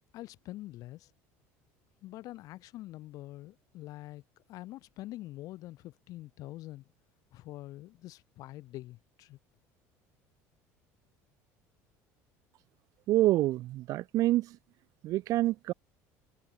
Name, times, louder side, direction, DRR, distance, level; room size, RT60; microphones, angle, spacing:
voice 1, 0.1-1.1 2.0-4.2 4.5-6.8 7.3-9.4, left 16 dB, 60° left, 3.8 m, -45 dB
voice 2, 13.1-14.5 15.0-15.7, right 16 dB, 60° right, 1.1 m, -27 dB
cardioid pair, 115°, 7 cm